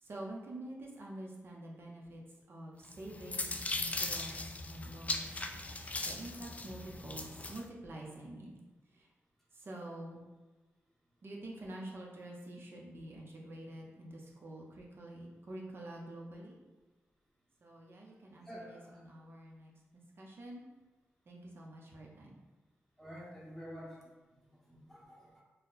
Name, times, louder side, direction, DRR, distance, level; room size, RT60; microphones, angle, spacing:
voice 1, 0.0-2.2 2.5-5.4 5.7-8.6 8.9-9.1 9.5-10.2 11.2-16.6 17.6-20.6 21.3-22.4, right 1 dB, 50° right, -2 dB, 0.7 m, -47 dB
sound 1, 2.9-7.6, left 2 dB, 30° left, 0.3 m, -39 dB
voice 2, 18.4-19.0 23.0-24.0 24.3-25.4, equal, 5° left, -5 dB, 0.8 m, -49 dB
4.0 x 2.1 x 3.9 m, 1.2 s
wide cardioid pair, 120°, 5 cm